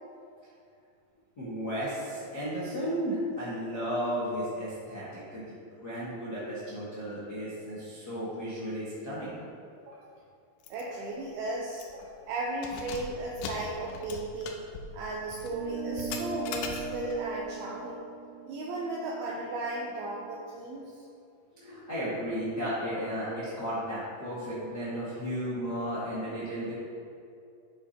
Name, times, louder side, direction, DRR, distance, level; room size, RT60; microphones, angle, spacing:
voice 1, 1.4-9.3 21.5-26.7, equal, 60° left, -11 dB, 1.0 m, -34 dB
voice 2, 9.8-10.1 10.7-14.7 14.9-18.0 18.5-20.8, right 2 dB, 80° right, -4 dB, 2.3 m, -35 dB
Keys jangling, 10.6-10.8 11.2-11.3 11.7-12.1 12.5-17.2, left 5 dB, 85° left, 2.8 m, -41 dB
sound 1, 15.5-20.3, right 5 dB, 50° right, 3.3 m, -40 dB
10.5 x 8.5 x 3.0 m, 2.5 s
omnidirectional pair, 5.3 m